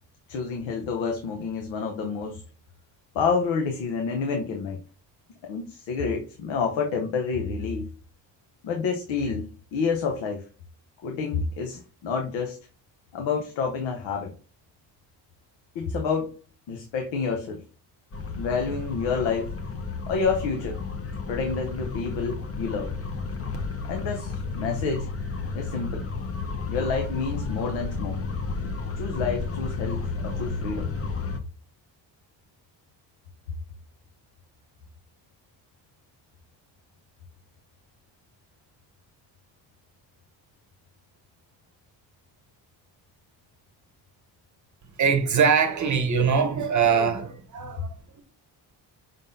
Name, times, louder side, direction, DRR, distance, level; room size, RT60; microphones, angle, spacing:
voice 1, 0.3-2.4 3.1-4.8 5.4-7.9 8.6-10.4 11.0-12.6 13.1-14.3 15.7-16.4 16.7-17.6 18.4-19.5 20.1-20.8 21.3-22.9 23.9-25.1 25.5-26.1 26.7-28.2 29.0-30.9, left 5 dB, 85° left, 0.9 m, -28 dB
sound 1, 18.1-31.4, left 4 dB, 30° left, 0.8 m, -32 dB
voice 2, 45.0-48.2, right 6 dB, 40° right, 0.8 m, -23 dB
5.3 x 3.7 x 2.6 m
cardioid pair, 90°, 45 cm